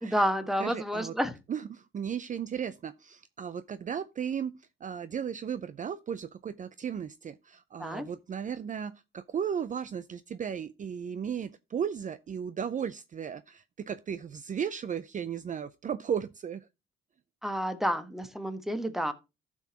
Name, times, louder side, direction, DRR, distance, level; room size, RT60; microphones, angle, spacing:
voice 1, 0.0-1.3 7.8-8.1 17.4-19.1, equal, ahead, 1.4 m, -30 dB
voice 2, 0.6-1.1 1.5-16.7, right 8 dB, 40° right, 0.5 m, -35 dB
13.5 x 6.2 x 2.9 m
cardioid pair, 90°, 20 cm